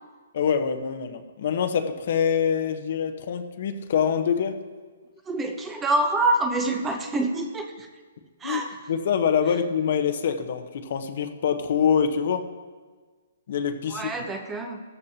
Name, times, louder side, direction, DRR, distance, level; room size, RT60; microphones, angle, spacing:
voice 1, 0.3-4.6 8.4-8.6 8.9-12.5 13.5-14.1, left 7 dB, 55° left, 7 dB, 1.0 m, -25 dB
voice 2, 5.2-7.9 8.4-8.8 13.9-14.8, right 2 dB, 10° right, 5 dB, 0.8 m, -26 dB
15.0 x 13.5 x 2.9 m, 1.4 s
hypercardioid pair, 160°, 0 cm